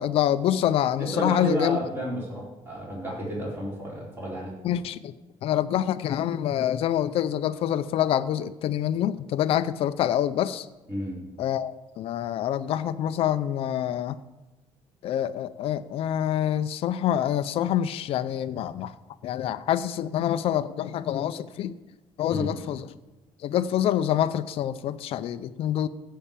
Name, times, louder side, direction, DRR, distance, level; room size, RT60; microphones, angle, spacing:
voice 1, 0.0-1.8 4.6-5.1 5.4-10.7 11.4-14.2 15.0-18.9 19.2-21.7 22.2-22.8 23.4-25.9, left 11 dB, 60° left, 12 dB, 0.5 m, -26 dB
voice 2, 1.0-4.5 10.9-11.2 22.3-22.5, right 1 dB, 20° right, -5 dB, 4.6 m, -31 dB
15.0 x 5.7 x 7.3 m, 1.1 s
cardioid pair, 155°, 11 cm